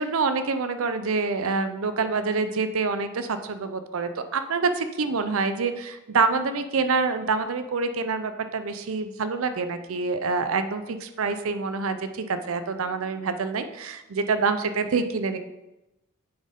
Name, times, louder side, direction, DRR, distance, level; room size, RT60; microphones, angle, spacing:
voice 1, 0.0-15.4, right 4 dB, 70° right, 9 dB, 0.5 m, -26 dB
8.4 x 4.3 x 3.7 m, 0.98 s
head